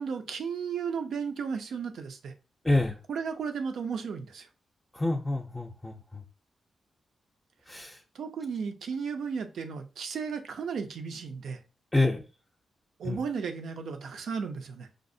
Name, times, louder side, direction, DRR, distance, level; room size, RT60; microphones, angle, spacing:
voice 1, 0.0-2.3 3.1-4.5 8.1-11.6 13.0-14.9, right 6 dB, 80° right, 7 dB, 0.5 m, -34 dB
voice 2, 2.6-3.0 4.9-6.2 7.7-8.0 11.9-12.2 13.0-13.2, left 2 dB, 15° left, 1 dB, 0.5 m, -27 dB
5.0 x 2.0 x 2.6 m, 0.33 s
cardioid pair, 75°, 0 cm